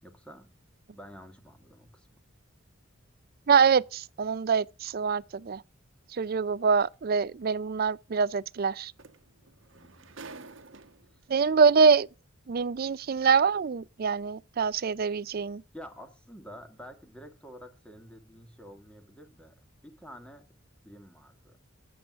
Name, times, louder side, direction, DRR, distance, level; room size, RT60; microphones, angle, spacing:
voice 1, 0.0-0.5 0.9-2.2 9.7-10.4 11.1-11.2 15.7-19.6 19.8-20.4 20.8-21.6, equal, 5° left, 2.1 m, -49 dB
voice 2, 3.5-5.6 6.1-8.9 11.3-12.1 12.5-15.6, right 5 dB, 50° right, 0.4 m, -24 dB
sound 1, 6.8-6.9 8.6-8.7 9.0-11.2 12.2-12.3, right 3 dB, 70° right, 1.2 m, -48 dB
23.5 x 7.9 x 2.5 m
head